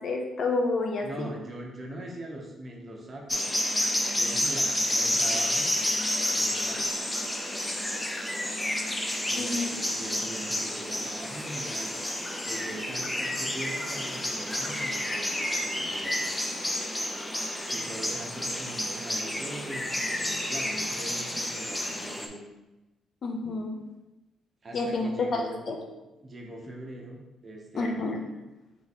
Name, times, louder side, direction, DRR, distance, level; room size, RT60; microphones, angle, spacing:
voice 1, 0.0-1.3 9.3-9.7 23.2-23.8 24.7-25.9 27.7-28.2, left 3 dB, 55° left, 3 dB, 0.6 m, -29 dB
voice 2, 1.0-3.5 4.1-5.8 6.3-7.0 9.3-12.0 12.4-16.3 17.7-22.4 24.6-25.6 26.2-28.1, right 1 dB, 35° right, 0 dB, 0.9 m, -42 dB
sound 1, 3.3-22.3, left 1 dB, 10° left, 0.5 m, -30 dB
3.5 x 3.1 x 4.1 m, 1.0 s
cardioid pair, 90°, 0 cm